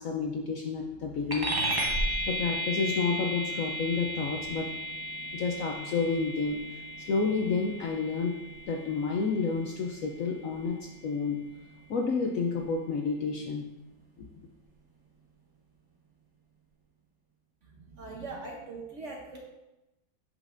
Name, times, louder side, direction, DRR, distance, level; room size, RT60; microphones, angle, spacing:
voice 1, 0.0-1.5 1.8-4.7 5.3-6.6 7.0-8.4 8.7-11.4 11.9-13.7 14.2-14.3, left 4 dB, 70° left, 1 dB, 0.8 m, -30 dB
sound 1, 1.3-11.1, equal, 30° right, 0.4 m, -35 dB
voice 2, 17.7-19.4, right 3 dB, 55° right, -1 dB, 0.9 m, -41 dB
7.9 x 5.6 x 2.5 m, 1.0 s
omnidirectional pair, 1.9 m